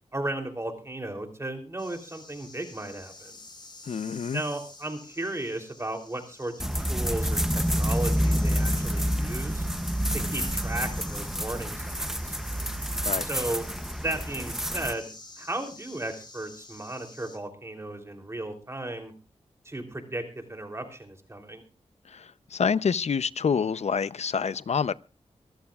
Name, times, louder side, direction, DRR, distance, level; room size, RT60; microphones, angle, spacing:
voice 1, 0.1-3.4 4.3-9.6 10.1-12.3 13.2-13.7 14.0-15.1 15.4-19.1 19.6-20.2 20.5-21.6, right 1 dB, 25° right, 3.2 m, -35 dB
sound 1, 1.8-17.4, left 2 dB, 40° left, 5.6 m, -49 dB
voice 2, 3.9-4.4 13.0-13.3 22.1-24.9, left 6 dB, 65° left, 0.6 m, -27 dB
sound 2, 6.6-14.9, equal, 5° right, 0.7 m, -28 dB
25.5 x 14.5 x 2.4 m
wide cardioid pair, 90°, 12 cm